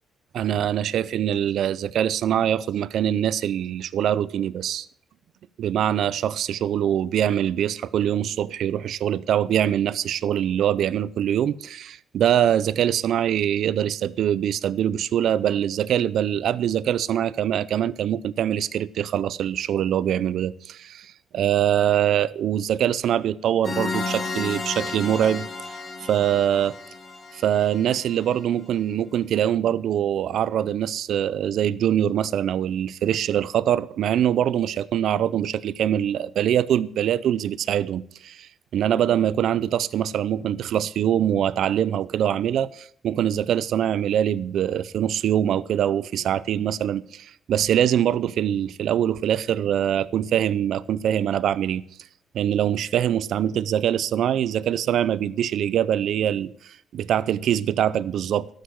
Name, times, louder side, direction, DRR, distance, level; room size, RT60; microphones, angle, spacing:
voice 1, 0.3-4.9 5.6-25.5 26.1-26.8 27.3-51.8 52.3-58.5, right 10 dB, 70° right, 0.5 m, -23 dB
sound 1, 23.6-28.3, left 3 dB, 35° left, 2.3 m, -33 dB
12.5 x 6.6 x 8.0 m
cardioid pair, 90°, 0 cm